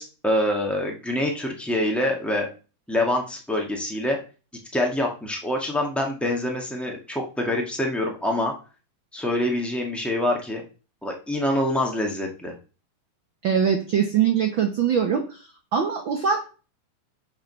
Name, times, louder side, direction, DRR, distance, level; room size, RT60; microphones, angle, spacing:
voice 1, 0.0-2.5 2.9-4.2 4.7-8.5 9.1-10.6 11.0-12.5, left 1 dB, ahead, 0 dB, 0.3 m, -25 dB
voice 2, 13.4-15.4 15.7-16.4, right 7 dB, 90° right, 4 dB, 1.0 m, -22 dB
10.5 x 5.1 x 6.3 m, 0.36 s
omnidirectional pair, 3.9 m